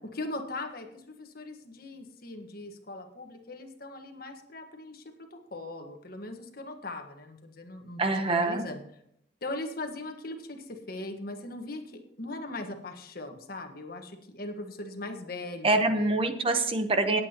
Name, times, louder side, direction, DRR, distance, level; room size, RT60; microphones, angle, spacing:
voice 1, 0.1-5.0 5.3-8.8 9.4-16.2, left 2 dB, 55° left, 5 dB, 1.5 m, -39 dB
voice 2, 8.0-8.6 15.6-17.2, right 2 dB, 30° right, 7 dB, 0.9 m, -25 dB
19.0 x 8.5 x 2.9 m, 0.73 s
head